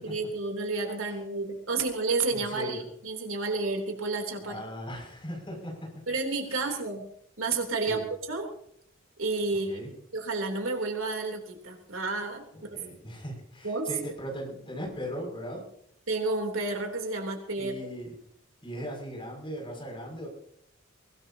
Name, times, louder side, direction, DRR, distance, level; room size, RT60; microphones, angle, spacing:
voice 1, 0.0-4.6 6.1-7.1 7.4-8.0 8.3-8.5 9.2-9.8 10.1-12.8 13.6-13.9 16.1-17.9, right 3 dB, 80° right, 3 dB, 3.3 m, -31 dB
voice 2, 2.3-2.9 4.4-5.9 6.5-6.8 7.9-8.0 9.7-9.9 12.5-15.6 17.6-18.1 18.6-20.3, equal, 25° left, -1 dB, 6.4 m, -38 dB
23.0 x 18.0 x 2.9 m, 0.70 s
head